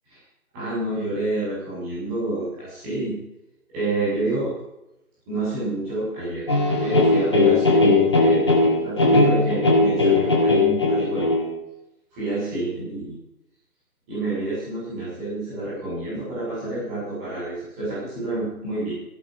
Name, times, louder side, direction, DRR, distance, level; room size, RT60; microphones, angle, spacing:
voice 1, 0.5-3.2 3.7-4.5 5.3-6.5 6.8-11.3 12.1-13.2 14.1-18.9, right 2 dB, 10° right, -10 dB, 7.0 m, -28 dB
sound 1, 6.5-11.5, left 2 dB, 20° left, 1.9 m, -18 dB
16.5 x 12.0 x 5.4 m, 0.90 s
figure-of-eight pair, 170°, 45 cm